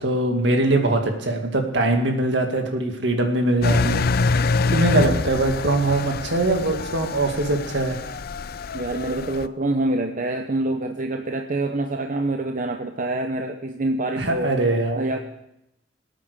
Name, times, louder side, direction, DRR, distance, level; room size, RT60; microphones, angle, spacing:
voice 1, 0.0-8.0 14.2-15.1, right 2 dB, 65° right, 4 dB, 2.3 m, -22 dB
Engine, 3.6-9.5, left 4 dB, 55° left, 0.5 m, -25 dB
voice 2, 8.7-14.6 15.0-15.2, right 2 dB, 45° right, 5 dB, 0.8 m, -26 dB
19.0 x 9.1 x 6.7 m, 0.85 s
head